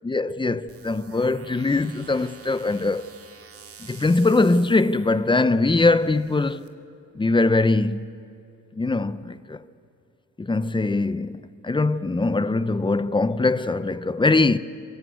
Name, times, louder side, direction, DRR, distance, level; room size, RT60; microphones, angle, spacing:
voice 1, 0.0-3.1 3.8-6.6 7.1-8.1 8.8-9.6 10.4-14.6, left 3 dB, 15° left, 0.8 m, -22 dB
sound 1, 0.7-6.7, right 6 dB, 50° right, 2.4 m, -48 dB
28.0 x 22.0 x 8.1 m
cardioid pair, 90°, 30 cm